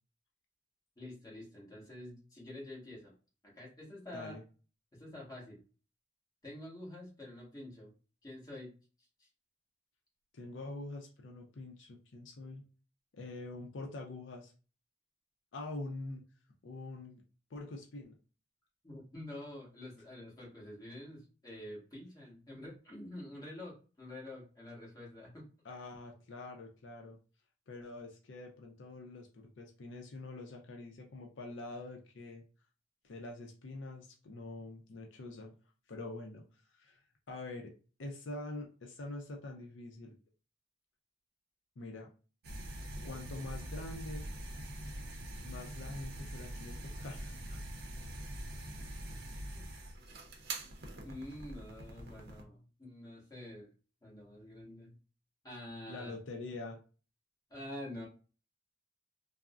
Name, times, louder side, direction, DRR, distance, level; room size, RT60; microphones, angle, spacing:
voice 1, 1.0-3.1 3.4-4.4 4.9-5.6 6.4-7.9 8.2-8.7 9.0-9.3 18.8-25.5 49.5-49.7 51.0-53.7 54.0-55.0 55.4-56.1 57.5-58.1, left 1 dB, 20° left, -4 dB, 1.2 m, -47 dB
voice 2, 10.3-12.6 13.1-14.5 15.5-16.2 16.6-17.2 17.5-18.1 25.6-27.2 27.7-32.4 33.0-35.5 35.9-36.4 36.7-37.7 38.0-40.1 41.8-42.1 43.0-44.3 45.4-47.6 55.9-56.8, left 2 dB, 75° left, 1 dB, 0.5 m, -45 dB
sound 1, 42.4-52.4, right 1 dB, 55° right, 0.6 m, -44 dB
3.4 x 2.0 x 2.4 m, 0.36 s
head